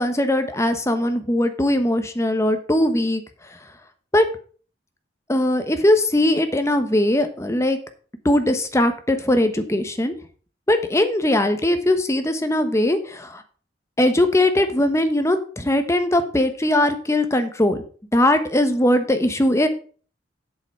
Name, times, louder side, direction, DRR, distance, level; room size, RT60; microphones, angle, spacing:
voice 1, 0.0-3.2 4.1-4.3 5.3-7.8 8.2-10.1 10.7-13.4 14.0-17.8 18.1-19.7, left 1 dB, 15° left, 8 dB, 1.1 m, -20 dB
7.9 x 7.0 x 5.5 m, 0.41 s
head